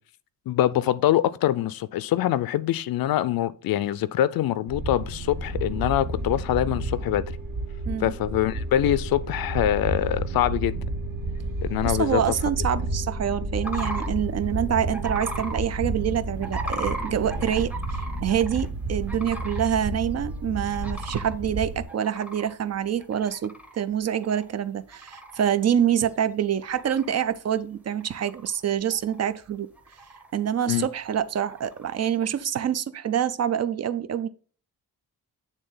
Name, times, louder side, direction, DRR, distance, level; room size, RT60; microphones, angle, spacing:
voice 1, 0.5-7.4 8.0-10.8 11.6-12.2 30.7-30.9, left 12 dB, 70° left, 0.5 m, -24 dB
sound 1, 4.7-21.8, right 2 dB, 65° right, 1.6 m, -31 dB
sound 2, 5.4-15.5, equal, 20° right, 1.1 m, -48 dB
voice 2, 11.8-29.7 30.3-34.3, right 9 dB, 45° right, 0.4 m, -26 dB
sound 3, 13.6-14.1 14.9-15.6 16.4-18.7 19.1-19.7 20.1-20.2 20.7-21.3 21.9-23.8 24.1-24.5 24.9-25.4 26.0-26.1 26.5-27.3 27.9-28.6 28.9-29.5 29.8-30.3 31.4-32.0, right 1 dB, 5° right, 0.7 m, -37 dB
8.9 x 3.6 x 3.9 m
wide cardioid pair, 175°, 36 cm